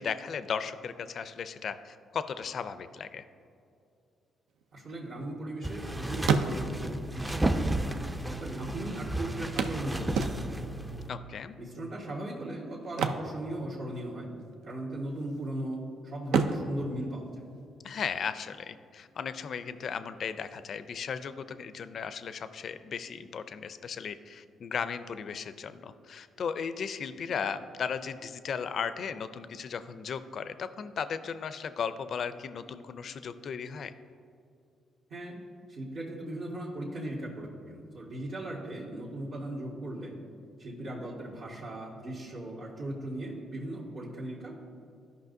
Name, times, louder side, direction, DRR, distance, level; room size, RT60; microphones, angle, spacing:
voice 1, 0.0-3.2 11.1-11.6 17.8-33.9, left 6 dB, 55° left, 12 dB, 0.4 m, -36 dB
sound 1, 4.6-5.8 6.1-7.0 7.9-8.0 8.2-8.3 9.6-10.8 12.8-14.1 14.4-14.7 15.2-15.8 16.2-18.0 20.0-20.1 20.5-20.6, right 5 dB, 85° right, 0.5 m, -31 dB
voice 2, 4.7-10.7 11.6-14.3 14.6-17.4 35.1-35.4 35.7-40.2 40.6-44.6, right 1 dB, 65° right, -8 dB, 1.7 m, -38 dB
sound 2, 5.6-11.1, right 1 dB, 10° right, 0.4 m, -33 dB
13.0 x 5.4 x 2.7 m, 2.5 s
cardioid pair, 90°, 0 cm